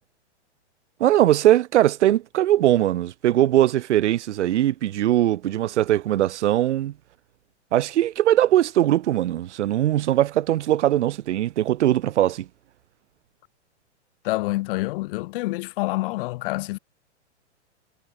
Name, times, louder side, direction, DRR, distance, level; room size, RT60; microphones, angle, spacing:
voice 1, 1.0-6.9 7.7-12.5, right 13 dB, 75° right, 0.6 m, -20 dB
voice 2, 14.2-16.8, left 20 dB, 50° left, 3.0 m, -27 dB
hypercardioid pair, 120°, 35 cm